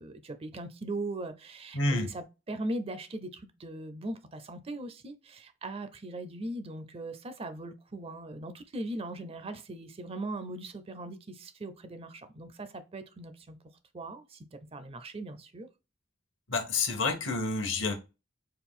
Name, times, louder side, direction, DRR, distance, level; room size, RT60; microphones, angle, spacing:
voice 1, 0.0-13.6 13.9-14.5 14.7-15.7, right 2 dB, 30° right, 0.5 m, -39 dB
voice 2, 1.7-2.1 16.5-17.9, left 3 dB, 70° left, 1.0 m, -29 dB
4.4 x 2.3 x 3.6 m
head